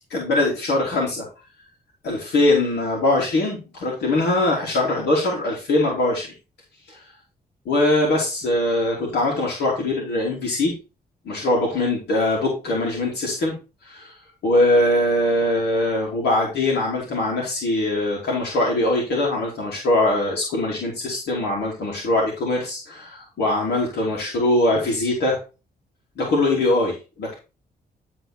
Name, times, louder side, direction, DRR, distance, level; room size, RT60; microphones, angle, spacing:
voice 1, 0.1-1.3 2.0-6.3 6.9-7.0 7.6-10.7 11.2-13.6 13.8-14.1 14.4-25.4 26.2-27.3, left 2 dB, 85° left, -3 dB, 3.2 m, -22 dB
11.0 x 4.3 x 4.5 m, 0.30 s
cardioid pair, 100°, 17 cm